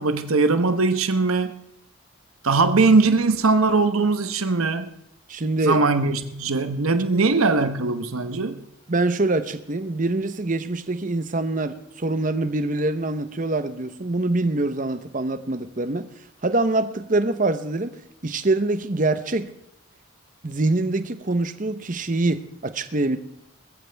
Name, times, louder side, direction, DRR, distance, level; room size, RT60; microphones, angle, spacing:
voice 1, 0.0-1.6 2.4-4.9 5.6-8.6, right 3 dB, 90° right, 9 dB, 1.0 m, -20 dB
voice 2, 5.3-5.8 7.1-7.3 8.9-16.1 16.4-19.5 20.4-23.2, right 2 dB, 40° right, 11 dB, 0.9 m, -24 dB
20.5 x 14.5 x 3.4 m, 0.78 s
head